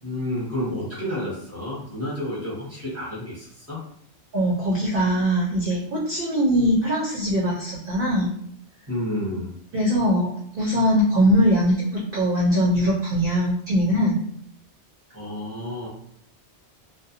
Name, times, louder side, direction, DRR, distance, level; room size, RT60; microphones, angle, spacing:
voice 1, 0.0-3.8 8.9-9.5 15.1-15.9, left 1 dB, 15° right, -6 dB, 0.8 m, -30 dB
voice 2, 4.3-8.3 9.7-11.8 12.1-14.2, equal, 60° right, -4 dB, 0.7 m, -21 dB
2.4 x 2.0 x 2.8 m, 0.64 s
omnidirectional pair, 1.2 m